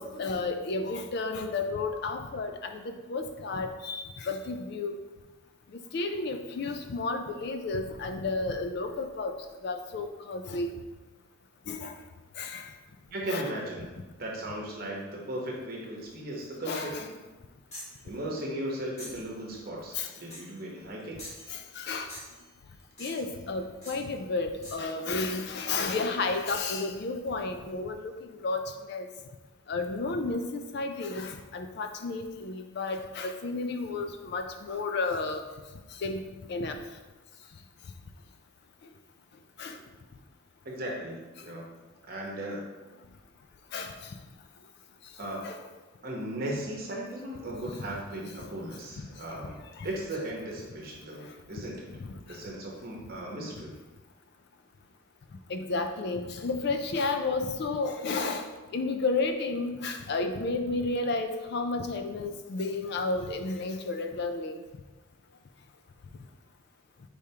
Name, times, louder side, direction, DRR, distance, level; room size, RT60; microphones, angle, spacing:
voice 1, 0.0-5.0 5.9-9.4 9.6-10.7 11.7-11.9 12.4-12.7 13.3-13.4 16.7-17.1 20.0-20.1 21.5-22.1 23.0-28.6 28.9-29.1 29.7-35.4 36.0-36.2 36.5-36.8 39.6-39.8 43.7-44.0 45.4-45.6 52.0-52.1 55.5-58.5 58.7-64.6, left 3 dB, 50° left, 7 dB, 0.3 m, -32 dB
voice 2, 13.1-13.8 14.1-17.1 18.0-21.2 40.6-41.6 42.0-42.6 45.2-45.4 46.0-51.9 52.3-53.8, right 1 dB, 45° right, -2 dB, 0.9 m, -37 dB
sound 1, 17.7-18.0 19.0-19.3 20.3-20.6 21.2-21.8 22.1-22.4 23.0-23.4 23.8-24.0 24.6-24.9, left 1 dB, 30° left, 1.3 m, -45 dB
4.8 x 3.4 x 2.8 m, 1.2 s
head